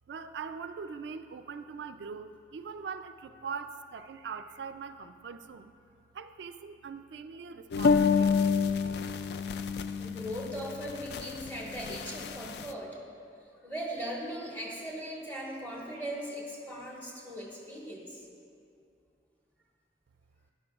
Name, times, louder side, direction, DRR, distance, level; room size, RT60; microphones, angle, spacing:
voice 1, 0.1-5.7 6.2-8.3, right 5 dB, 70° right, 9 dB, 0.3 m, -41 dB
sound 1, 7.7-12.7, left 5 dB, 60° left, 0.3 m, -29 dB
voice 2, 10.0-13.0 13.6-18.2, equal, 10° left, -4 dB, 1.4 m, -39 dB
12.5 x 10.5 x 2.4 m, 2.5 s
head